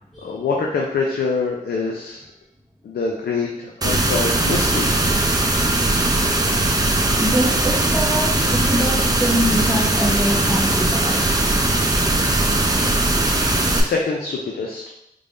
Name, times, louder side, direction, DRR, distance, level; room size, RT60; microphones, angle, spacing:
voice 1, 0.2-2.2 2.8-4.9 8.4-8.5 13.8-14.9, left 4 dB, 85° left, -1 dB, 0.5 m, -25 dB
sound 1, 3.8-13.8, right 2 dB, 25° right, 0.5 m, -19 dB
voice 2, 7.2-11.3, equal, ahead, -6 dB, 0.8 m, -24 dB
3.4 x 3.4 x 2.6 m, 0.82 s
cardioid pair, 55°, 16 cm